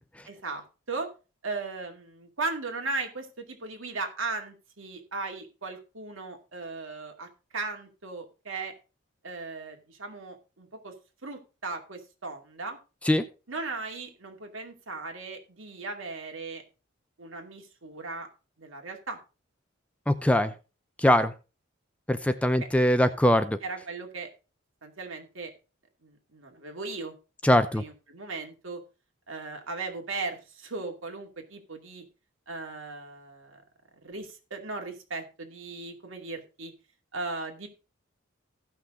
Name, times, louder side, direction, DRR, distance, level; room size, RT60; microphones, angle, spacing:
voice 1, 0.3-1.1 1.4-8.7 9.2-10.9 11.2-12.8 13.5-16.6 17.2-18.3 18.6-19.2 23.6-24.3 24.8-25.5 26.0-27.1 27.7-28.8 29.3-32.0 32.5-33.6 34.0-36.7 37.1-37.7, right 3 dB, 80° right, 3 dB, 2.4 m, -37 dB
voice 2, 20.1-20.5 21.0-21.3 22.1-23.6 27.4-27.8, left 1 dB, 5° left, 10 dB, 0.5 m, -22 dB
16.0 x 5.9 x 3.8 m, 0.31 s
head